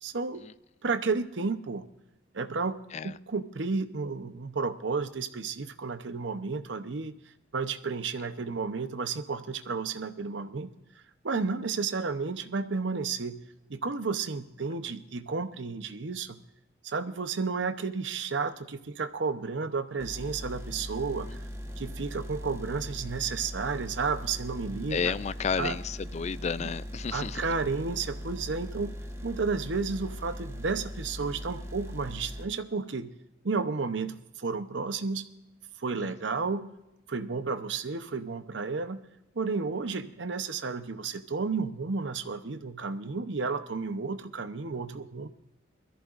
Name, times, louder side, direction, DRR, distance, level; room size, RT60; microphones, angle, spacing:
voice 1, 0.0-0.4 0.8-1.8 2.3-2.7 3.0-7.1 7.5-10.7 11.2-13.4 13.7-16.4 16.8-21.3 21.8-25.1 25.6-25.8 26.6-26.7 27.1-28.9 29.2-33.1 33.4-35.3 35.8-36.7 37.1-39.1 39.3-45.3, right 4 dB, 80° right, 0.8 m, -32 dB
sound 1, 20.0-32.5, equal, 15° right, 1.2 m, -40 dB
voice 2, 24.9-27.4 36.0-36.1, left 6 dB, 40° left, 0.4 m, -32 dB
21.5 x 14.0 x 2.5 m
head